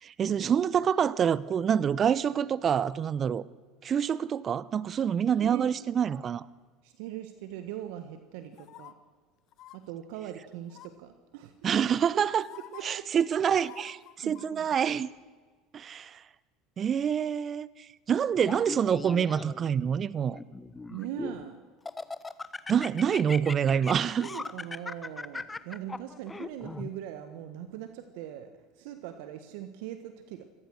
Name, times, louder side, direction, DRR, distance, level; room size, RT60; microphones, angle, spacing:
voice 1, 0.0-3.4 3.8-6.4 11.6-12.5 12.8-15.1 15.7-16.2 16.8-20.4 22.7-24.3, right 8 dB, 40° right, 0.7 m, -27 dB
voice 2, 5.4-5.8 6.8-8.9 9.7-11.7 12.1-12.2 12.7-13.2 14.2-14.8 20.9-21.6 24.0-30.5, right 11 dB, 65° right, 1.5 m, -41 dB
sound 1, 8.6-8.9 9.5-9.8 10.7-11.1 12.0-12.1 12.4-12.8 13.6-14.9 15.2-15.3, left 14 dB, 55° left, 1.2 m, -49 dB
Laughter, 18.4-19.7 20.3-21.4 21.9-26.9, left 3 dB, 15° left, 1.1 m, -38 dB
25.0 x 18.5 x 6.5 m
hypercardioid pair, 75°, 0 cm